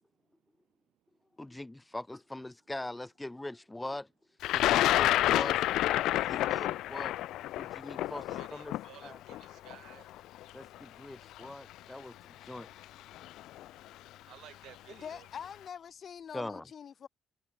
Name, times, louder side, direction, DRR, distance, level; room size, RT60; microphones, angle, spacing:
voice 1, 1.4-4.1 4.5-5.6 6.1-7.1 7.6-8.7 9.0-9.2 10.5-12.1 12.4-12.7 16.3-16.7, left 2 dB, 10° left, 0.7 m, -42 dB
Thunder, 4.4-10.4 11.4-11.5 12.6-12.8 13.2-13.6, left 14 dB, 80° left, 0.4 m, -29 dB
voice 2, 8.1-10.1 14.3-15.3, right 12 dB, 75° right, 4.2 m, -54 dB
voice 3, 14.9-17.1, left 7 dB, 55° left, 2.4 m, -44 dB
cardioid pair, 80°, 0 cm